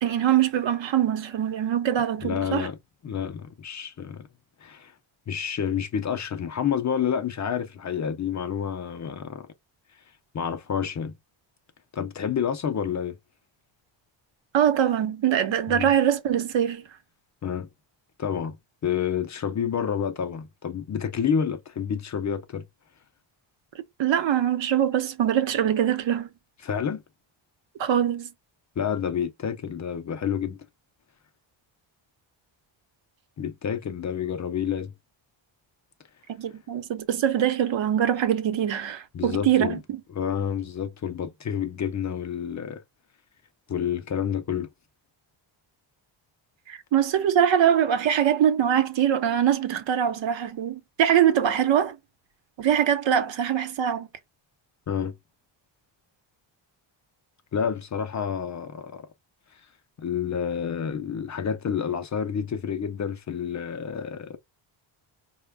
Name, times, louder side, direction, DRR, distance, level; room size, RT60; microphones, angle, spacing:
voice 1, 0.0-2.7 14.5-16.8 24.0-26.3 27.8-28.3 36.3-40.0 46.7-52.0 52.6-54.1, right 9 dB, 65° right, 0.9 m, -23 dB
voice 2, 2.2-2.8 3.0-4.3 4.6-4.9 5.3-9.5 10.3-11.1 11.9-13.2 15.7-15.9 17.4-17.7 18.2-18.6 18.8-22.6 26.6-27.0 28.8-30.7 33.4-34.9 39.1-39.8 40.1-42.8 43.7-44.7 54.9-55.2 57.5-59.1 59.5-59.6 60.0-64.4, left 8 dB, 40° left, 0.4 m, -29 dB
5.1 x 2.2 x 3.3 m
wide cardioid pair, 165°, 48 cm